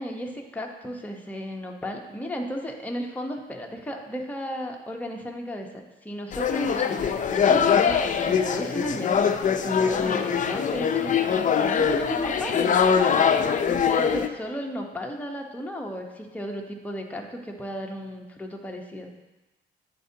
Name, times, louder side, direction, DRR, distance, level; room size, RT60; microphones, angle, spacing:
voice 1, 0.0-9.2 9.6-11.2 11.6-12.8 13.1-13.4 13.7-19.1, equal, 10° left, 1 dB, 0.9 m, -34 dB
sound 1, 6.3-14.3, left 7 dB, 40° left, 0.4 m, -23 dB
10.0 x 4.4 x 2.8 m, 1.1 s
cardioid pair, 90°, 20 cm